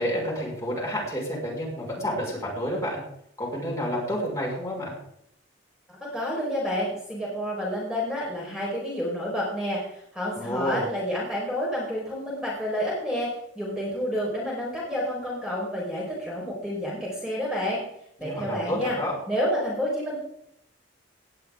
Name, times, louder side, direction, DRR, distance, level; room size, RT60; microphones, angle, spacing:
voice 1, 0.0-3.0 3.4-4.9 10.3-10.9 18.2-19.1, equal, 15° left, -4 dB, 5.5 m, -29 dB
voice 2, 6.0-13.3 13.5-17.8 18.2-19.0 19.3-20.2, equal, 5° right, -5 dB, 4.7 m, -29 dB
18.5 x 12.0 x 3.8 m, 0.72 s
head